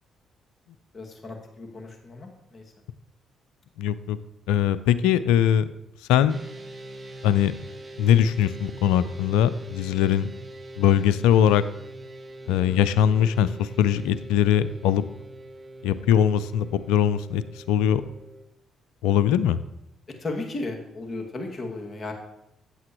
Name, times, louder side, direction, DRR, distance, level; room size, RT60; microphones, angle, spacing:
voice 1, 0.9-2.6 12.5-12.8 20.2-22.1, left 2 dB, 40° left, 2 dB, 2.1 m, -35 dB
voice 2, 3.8-4.2 4.5-5.7 6.1-6.4 7.2-7.5 8.0-10.3 10.8-11.6 12.5-15.0 15.8-18.0 19.0-19.6, left 9 dB, 85° left, 15 dB, 0.4 m, -21 dB
sound 1, 6.3-18.4, right 1 dB, 40° right, 1.8 m, -43 dB
14.0 x 8.4 x 3.0 m, 0.83 s
hypercardioid pair, 50°, 0 cm